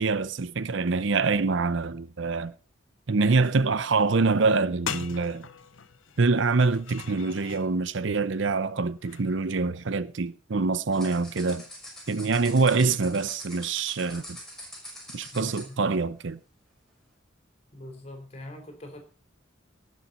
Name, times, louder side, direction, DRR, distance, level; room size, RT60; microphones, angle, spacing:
voice 1, 0.0-2.5 3.1-5.5 6.2-11.6 12.1-14.4 15.1-16.4, right 4 dB, 65° right, 0.7 m, -25 dB
sound 1, 4.5-4.6 4.9-7.7 9.0-9.3, left 7 dB, 75° left, 0.9 m, -39 dB
sound 2, 10.9-15.7, left 1 dB, ahead, 5.7 m, -44 dB
voice 2, 15.3-15.8 17.7-19.0, left 1 dB, 30° left, 4.1 m, -42 dB
18.5 x 7.4 x 5.5 m
head